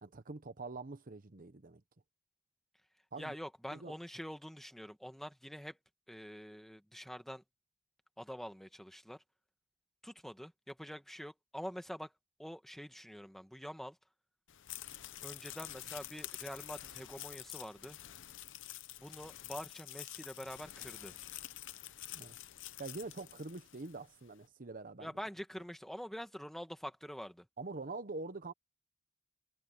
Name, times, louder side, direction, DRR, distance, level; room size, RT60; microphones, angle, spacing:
voice 1, 0.0-1.8 3.1-3.3 3.7-3.9 22.1-22.4 22.8-25.1 27.6-28.5, right 3 dB, 40° right, 0.9 m, -45 dB
voice 2, 3.2-5.8 6.1-7.4 8.2-9.2 10.0-12.1 12.4-14.0 15.2-18.0 19.0-21.2 25.0-27.5, equal, ahead, 1.5 m, -46 dB
sound 1, 14.5-24.0, left 14 dB, 55° left, 0.8 m, -48 dB
head